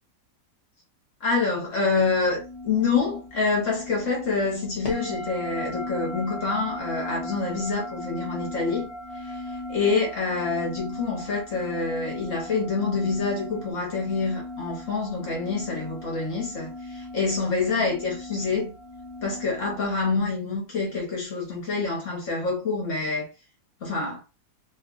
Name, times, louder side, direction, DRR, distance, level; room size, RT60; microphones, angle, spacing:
voice 1, 1.2-8.9 9.2-9.4 9.7-18.8 19.2-23.3 23.8-24.2, left 4 dB, 55° left, 1.3 m, -27 dB
sound 1, 2.0-20.0, left 1 dB, 35° left, 0.6 m, -38 dB
3.0 x 2.3 x 3.7 m
omnidirectional pair, 1.7 m